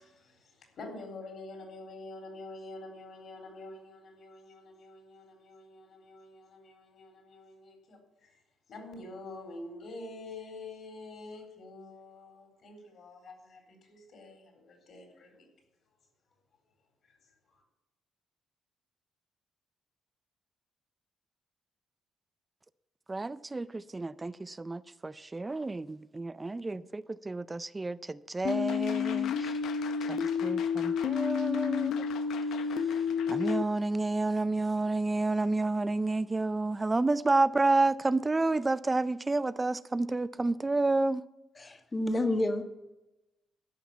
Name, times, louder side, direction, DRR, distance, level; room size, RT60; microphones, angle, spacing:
voice 1, 0.0-8.4 8.7-15.5 17.0-17.6, left 2 dB, 60° left, 4.0 m, -47 dB
voice 2, 23.1-29.5 30.1-31.9 33.3-41.2, right 2 dB, 20° right, 0.4 m, -30 dB
sound 1, 28.4-33.6, left 7 dB, 75° left, 0.7 m, -30 dB
voice 3, 41.6-42.6, left 1 dB, 25° left, 1.4 m, -29 dB
12.5 x 5.8 x 8.5 m
cardioid pair, 90°, 0 cm